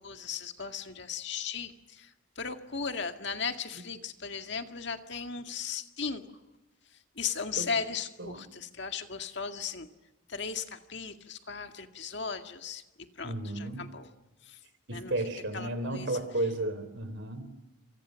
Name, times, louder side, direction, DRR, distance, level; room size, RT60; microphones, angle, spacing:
voice 1, 0.0-6.3 7.2-9.9 10.3-12.8 13.2-14.1 14.4-14.6 14.9-15.1 15.5-16.2, left 5 dB, 55° left, 6 dB, 2.0 m, -37 dB
voice 2, 13.2-13.9 14.9-17.6, right 1 dB, 60° right, 12 dB, 3.7 m, -33 dB
27.5 x 27.5 x 6.4 m, 1.1 s
head